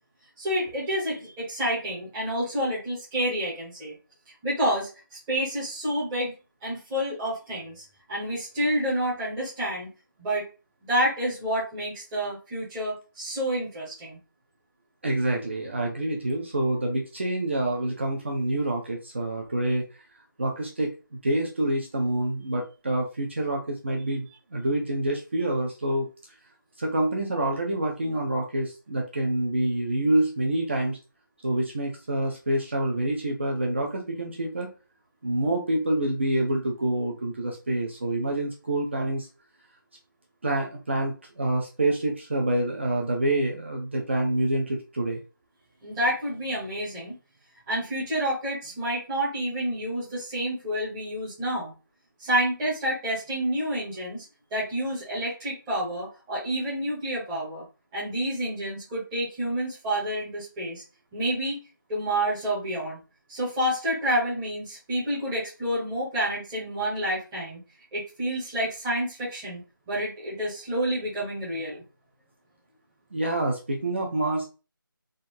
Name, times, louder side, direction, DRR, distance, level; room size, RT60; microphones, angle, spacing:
voice 1, 0.4-3.9 4.4-6.3 6.6-9.9 10.2-10.4 10.9-14.2 45.8-47.2 47.7-51.7 52.2-54.2 54.5-57.6 57.9-60.8 61.1-61.6 61.9-63.0 63.3-67.6 67.9-71.8, equal, 5° right, -9 dB, 0.9 m, -29 dB
voice 2, 15.0-19.8 20.4-20.9 21.2-26.1 26.8-31.0 31.4-34.7 35.2-39.3 40.4-45.2 73.1-74.5, right 1 dB, 30° right, 0 dB, 0.7 m, -27 dB
3.7 x 2.0 x 4.3 m, 0.31 s
figure-of-eight pair, 175°, 12 cm